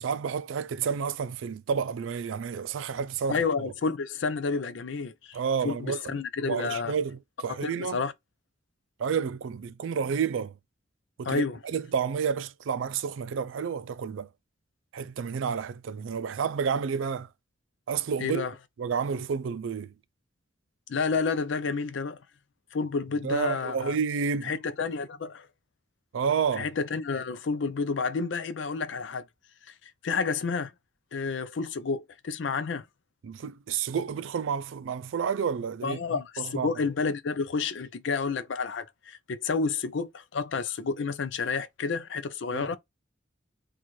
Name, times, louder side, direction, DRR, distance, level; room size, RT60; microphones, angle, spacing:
voice 1, 0.0-3.4 5.3-6.1 6.5-8.0 9.0-10.5 11.2-14.3 14.9-17.3 17.9-18.5 18.8-19.9 23.2-24.5 26.1-26.7 33.2-36.0 36.4-36.7 42.5-42.8, right 6 dB, 90° right, 0.4 m, -30 dB
voice 2, 3.3-5.4 5.6-6.9 7.5-8.1 11.2-11.6 18.2-18.5 20.9-22.2 22.7-24.0 24.4-25.5 26.6-29.2 29.7-29.8 30.0-30.7 31.1-32.8 35.8-42.8, left 4 dB, 70° left, 0.5 m, -30 dB
3.0 x 2.4 x 4.1 m
head